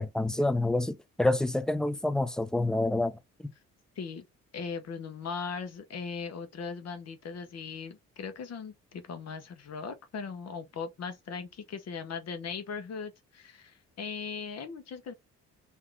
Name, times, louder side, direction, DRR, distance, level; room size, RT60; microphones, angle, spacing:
voice 1, 0.0-3.5, left 2 dB, ahead, 0.4 m, -28 dB
voice 2, 4.5-15.1, left 5 dB, 55° left, 1.0 m, -39 dB
3.8 x 2.8 x 3.3 m
cardioid pair, 90°, 30 cm